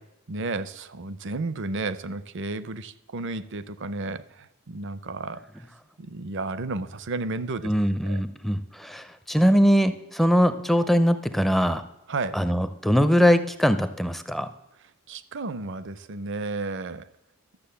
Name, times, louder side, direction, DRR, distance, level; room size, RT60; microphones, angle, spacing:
voice 1, 0.3-5.4 6.0-7.7 8.0-8.2 12.1-12.4 15.1-17.0, right 3 dB, 55° right, 15 dB, 0.6 m, -32 dB
voice 2, 7.6-11.8 12.3-14.5, equal, ahead, 10 dB, 0.4 m, -21 dB
12.0 x 7.1 x 6.9 m, 0.92 s
head